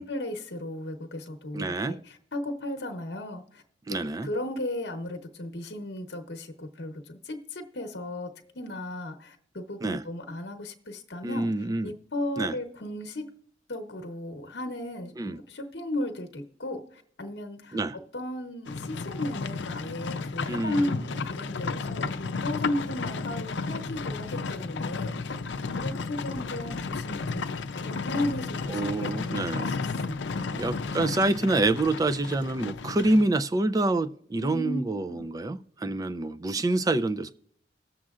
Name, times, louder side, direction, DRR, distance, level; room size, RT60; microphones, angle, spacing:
voice 1, 0.0-3.6 4.2-11.5 11.8-13.3 13.7-17.8 18.1-25.4 25.8-30.7 34.4-35.3, left 1 dB, 65° left, 6 dB, 0.9 m, -35 dB
voice 2, 1.5-2.0 3.9-4.3 9.8-10.0 11.2-11.9 12.4-12.6 15.2-15.4 17.7-18.0 20.5-21.0 28.7-29.7 30.5-37.3, right 2 dB, 20° right, 11 dB, 0.3 m, -27 dB
Livestock farm animals working animals, 18.7-33.2, left 4 dB, 85° left, 0.5 m, -33 dB
20.0 x 7.4 x 2.4 m, 0.66 s
head